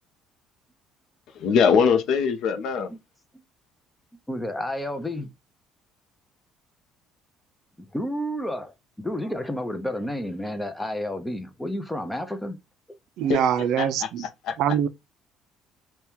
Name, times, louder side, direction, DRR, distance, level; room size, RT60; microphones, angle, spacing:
voice 1, 1.4-2.9 13.3-13.5 13.8-14.6, left 6 dB, 60° left, 0.6 m, -22 dB
voice 2, 4.3-5.3 7.8-12.6, left 1 dB, 5° left, 0.5 m, -31 dB
voice 3, 13.2-14.3 14.6-14.9, right 9 dB, 65° right, 0.3 m, -23 dB
2.8 x 2.2 x 3.4 m
cardioid pair, 150°, 0 cm